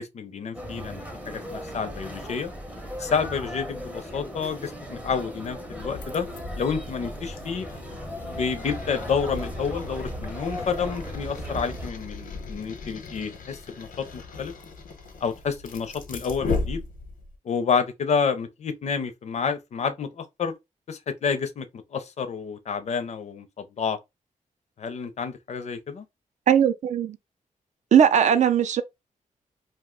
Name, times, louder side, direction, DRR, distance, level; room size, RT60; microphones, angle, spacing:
voice 1, 0.0-2.5 3.0-6.3 6.6-7.7 8.2-14.5 15.2-16.8 17.4-20.5 20.9-24.0 24.8-26.1, left 6 dB, 55° left, 0.5 m, -29 dB
sound 1, 0.5-11.9, equal, 10° right, 0.5 m, -37 dB
sound 2, 5.8-17.4, left 3 dB, 90° left, 0.8 m, -37 dB
voice 2, 26.5-27.2 27.9-28.8, right 8 dB, 60° right, 0.4 m, -19 dB
2.7 x 2.1 x 3.6 m
wide cardioid pair, 170°, 14 cm